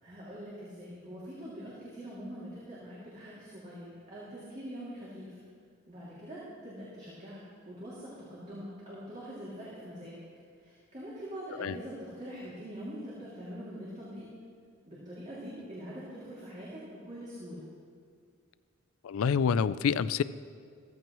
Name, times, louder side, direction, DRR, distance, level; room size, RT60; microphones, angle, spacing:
voice 1, 0.0-5.4 5.9-7.4 7.7-10.2 10.6-14.3 14.9-17.6, equal, 35° right, -8 dB, 2.5 m, -43 dB
voice 2, 19.0-20.2, left 6 dB, 80° left, 16 dB, 0.4 m, -27 dB
15.0 x 14.5 x 3.1 m, 2.1 s
head